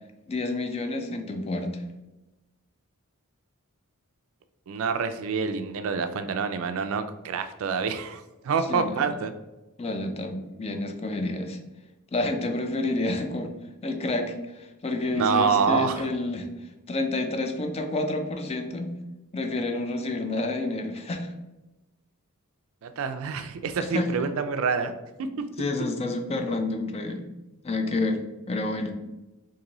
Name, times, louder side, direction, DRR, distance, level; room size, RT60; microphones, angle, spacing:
voice 1, 0.3-1.8 8.7-9.0 9.8-11.6 12.1-13.5 13.8-16.5 16.9-18.9 19.3-21.3 23.9-24.1 25.6-27.3 27.6-28.9, left 2 dB, 30° left, 5 dB, 0.4 m, -29 dB
voice 2, 4.7-9.3 15.1-16.1 22.8-24.9 25.2-25.4, right 5 dB, 65° right, 9 dB, 0.4 m, -27 dB
3.8 x 2.6 x 3.0 m, 1.0 s
head